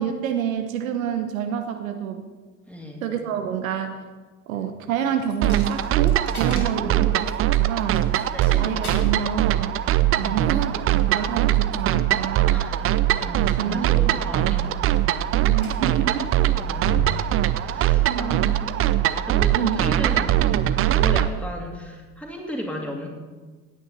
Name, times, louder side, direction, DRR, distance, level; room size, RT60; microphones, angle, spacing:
voice 1, 0.0-2.2 3.0-4.0 4.5-8.1 8.5-9.8 10.2-12.6 13.6-14.2 15.4-16.4 18.0-18.5 19.5-19.8, right 8 dB, 70° right, 6 dB, 1.0 m, -28 dB
voice 2, 2.7-3.1 6.3-7.0 8.3-8.8 10.2-10.5 12.5-14.8 16.6-18.7 19.3-20.4 20.8-23.1, equal, 5° left, 0 dB, 2.8 m, -35 dB
Coin (dropping), 5.3-19.0, right 3 dB, 90° left, 1.6 m, -39 dB
sound 1, 5.4-21.3, right 13 dB, 30° right, 0.6 m, -22 dB
17.0 x 9.4 x 4.3 m, 1.4 s
figure-of-eight pair, 60°, 42 cm